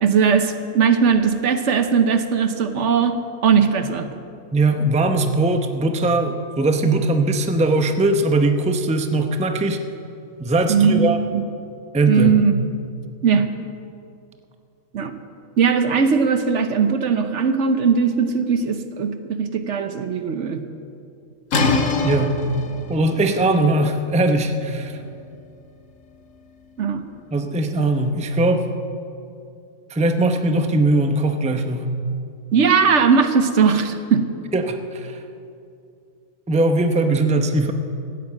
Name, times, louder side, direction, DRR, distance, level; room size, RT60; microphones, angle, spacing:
voice 1, 0.0-4.2 10.7-11.4 12.1-12.5 13.2-13.5 14.9-15.2 15.6-20.6 26.8-27.1 32.5-34.3, right 6 dB, 65° right, 9 dB, 1.1 m, -19 dB
voice 2, 4.5-9.8 10.4-11.2 11.9-12.4 22.0-22.4 22.9-25.0 27.3-28.7 29.9-31.9 34.5-35.2 36.5-37.7, right 2 dB, 5° right, 6 dB, 0.6 m, -20 dB
sound 1, 21.5-27.1, left 3 dB, 65° left, 1.5 m, -27 dB
15.0 x 8.7 x 8.5 m, 2.5 s
omnidirectional pair, 1.4 m